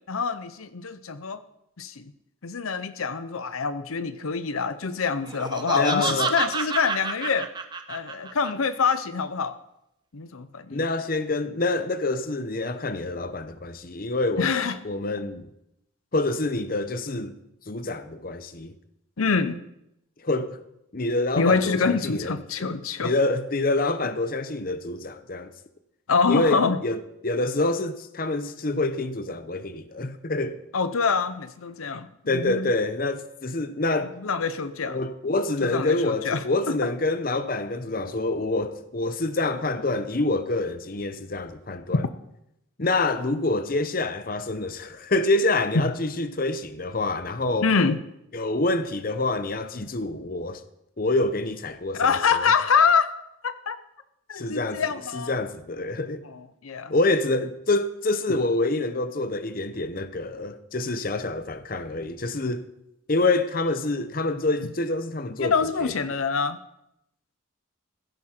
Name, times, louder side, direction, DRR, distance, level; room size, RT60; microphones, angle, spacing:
voice 1, 0.1-1.4 1.8-2.1 2.4-7.5 7.9-9.5 10.1-10.8 14.4-14.8 19.2-19.6 21.4-23.1 26.1-26.8 30.7-32.1 32.3-32.7 34.2-35.0 35.6-36.4 36.7-36.8 41.9-42.1 47.6-48.0 51.9-53.1 53.4-53.8 54.3-55.3 56.2-56.9 65.4-66.6, left 5 dB, 80° left, 0.7 m, -25 dB
Laughter, 5.3-8.5, right 4 dB, 20° right, 0.8 m, -29 dB
voice 2, 5.7-6.4 10.7-14.5 14.8-15.5 16.1-17.3 17.7-18.7 20.2-20.6 20.9-22.7 23.0-25.5 26.3-30.6 32.3-34.2 34.9-42.0 42.8-47.7 48.3-50.6 51.0-52.5 54.3-54.8 55.1-56.2 56.9-62.7 63.1-65.5 65.8-65.9, left 2 dB, 40° left, 0.8 m, -26 dB
15.5 x 12.5 x 4.4 m
head